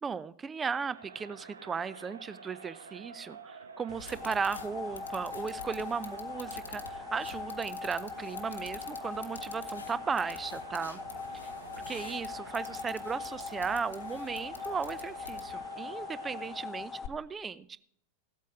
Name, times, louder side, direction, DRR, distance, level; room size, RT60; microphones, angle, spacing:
voice 1, 0.0-11.0 11.4-11.5 11.9-17.8, right 5 dB, 20° right, 18 dB, 0.5 m, -36 dB
Crowd, 0.7-16.8, right 5 dB, 75° right, 1.0 m, -49 dB
sound 1, 3.9-17.1, left 5 dB, 25° left, 0.8 m, -41 dB
sound 2, 4.0-15.7, left 4 dB, 75° left, 1.0 m, -49 dB
15.5 x 8.3 x 4.8 m, 0.65 s
figure-of-eight pair, 90°, 0 cm